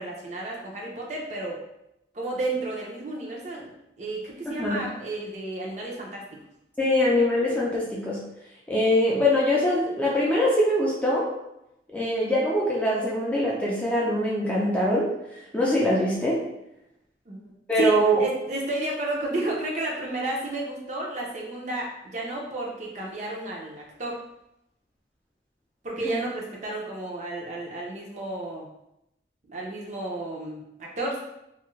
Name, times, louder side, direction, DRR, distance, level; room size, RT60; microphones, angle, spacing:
voice 1, 0.0-1.6 2.1-3.7 4.0-6.2 17.3-17.9 18.2-24.2 25.8-28.7 29.5-31.2, right 2 dB, 40° right, -2 dB, 0.6 m, -32 dB
voice 2, 4.5-4.8 6.8-8.2 8.7-11.3 11.9-15.1 15.5-16.5 17.7-18.2 26.0-26.2, left 1 dB, 10° left, -5 dB, 0.4 m, -23 dB
2.6 x 2.4 x 3.0 m, 0.85 s
head